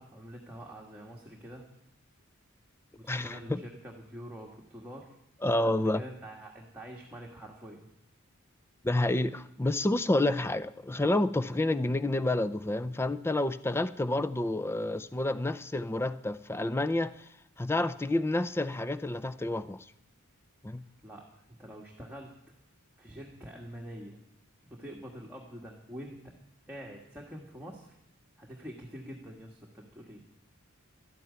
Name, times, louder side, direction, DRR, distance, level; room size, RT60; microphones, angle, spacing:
voice 1, 0.0-1.6 3.0-5.2 5.6-7.9 21.0-22.3 23.0-24.2 24.6-26.2 26.7-28.0 28.4-30.2, equal, 5° right, -2 dB, 1.6 m, -46 dB
voice 2, 3.1-3.6 5.4-6.0 8.8-17.3 17.6-19.8 20.6-20.8, left 2 dB, 10° left, 14 dB, 0.4 m, -29 dB
12.5 x 9.1 x 9.3 m, 0.78 s
head